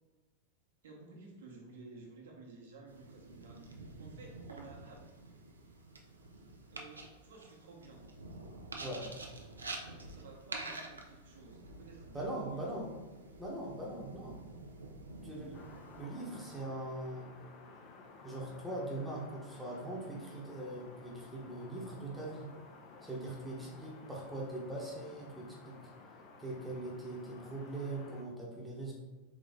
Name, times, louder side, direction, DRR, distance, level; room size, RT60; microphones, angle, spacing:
voice 1, 0.8-5.0 6.7-8.0 9.8-12.8 23.6-23.7, right 3 dB, 70° right, -1 dB, 1.1 m, -54 dB
sound 1, 2.9-16.0, right 2 dB, 85° right, 0.5 m, -48 dB
voice 2, 12.1-12.9 13.4-14.4 15.2-15.5 16.0-17.3 18.2-22.5 23.0-25.8 26.4-28.9, right 1 dB, 5° right, -4 dB, 1.0 m, -41 dB
sound 2, 15.5-28.2, left 4 dB, 40° left, 0.6 m, -54 dB
4.1 x 3.0 x 3.6 m, 1.2 s
figure-of-eight pair, 90°, 0 cm